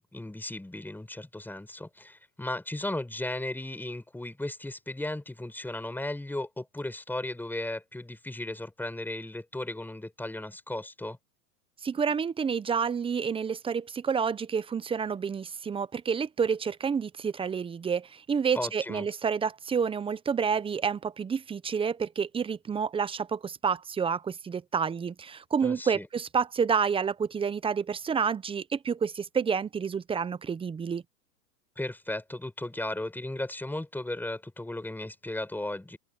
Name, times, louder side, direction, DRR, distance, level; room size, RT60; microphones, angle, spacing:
voice 1, 0.0-11.2 18.5-19.1 25.6-26.1 31.8-36.0, left 1 dB, 5° left, 5.4 m, -36 dB
voice 2, 11.8-31.0, right 6 dB, 10° right, 0.8 m, -29 dB
open air
hypercardioid pair, 125°, 47 cm